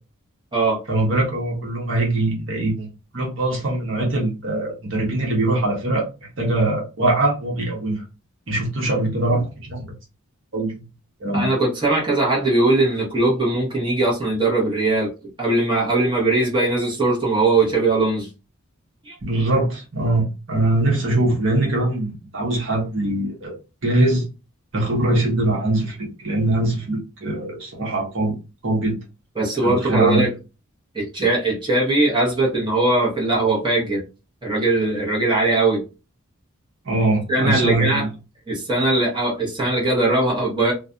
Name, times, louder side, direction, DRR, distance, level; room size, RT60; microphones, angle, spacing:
voice 1, 0.9-8.0 8.5-9.9 10.5-10.8 11.2-11.5 19.2-23.5 23.8-24.3 24.7-28.4 28.6-28.9 29.6-30.3 36.8-38.1, right 2 dB, 55° right, -1 dB, 1.0 m, -22 dB
voice 2, 11.3-15.1 15.4-18.3 19.0-19.2 29.4-30.3 30.9-34.0 34.4-35.8 37.3-38.1 38.5-40.7, right 2 dB, 20° right, -5 dB, 0.8 m, -20 dB
2.4 x 2.1 x 2.5 m, 0.30 s
head